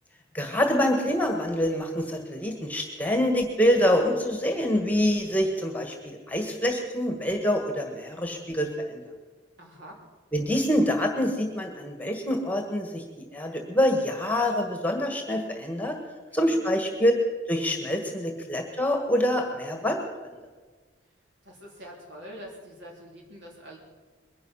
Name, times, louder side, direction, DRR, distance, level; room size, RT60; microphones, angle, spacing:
voice 1, 0.3-9.0 10.3-13.0 13.3-16.0 16.3-17.1 17.5-20.3, equal, 10° left, 4 dB, 1.6 m, -26 dB
voice 2, 9.6-10.0 16.3-16.6 21.4-23.8, equal, 65° right, -1 dB, 3.7 m, -45 dB
22.0 x 10.5 x 5.8 m, 1.4 s
head